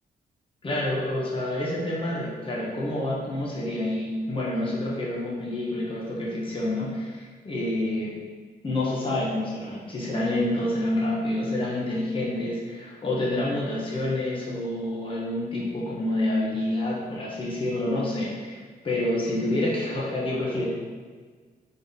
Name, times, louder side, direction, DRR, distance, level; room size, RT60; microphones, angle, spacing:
voice 1, 0.6-8.1 8.6-20.7, left 1 dB, 30° left, -6 dB, 1.1 m, -28 dB
3.9 x 3.7 x 3.7 m, 1.5 s
cardioid pair, 105°, 17 cm